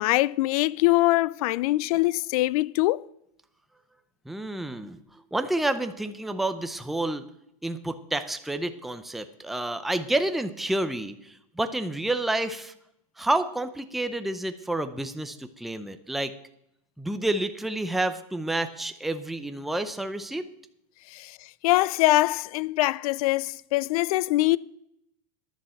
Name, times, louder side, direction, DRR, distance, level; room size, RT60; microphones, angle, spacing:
voice 1, 0.0-3.0 21.1-21.4 21.6-24.6, left 19 dB, 65° left, 0.4 m, -23 dB
voice 2, 4.3-7.2 7.6-12.7 13.2-16.3 17.0-20.5, right 1 dB, ahead, 0.5 m, -29 dB
11.0 x 7.2 x 7.6 m
supercardioid pair, 145°, 20 cm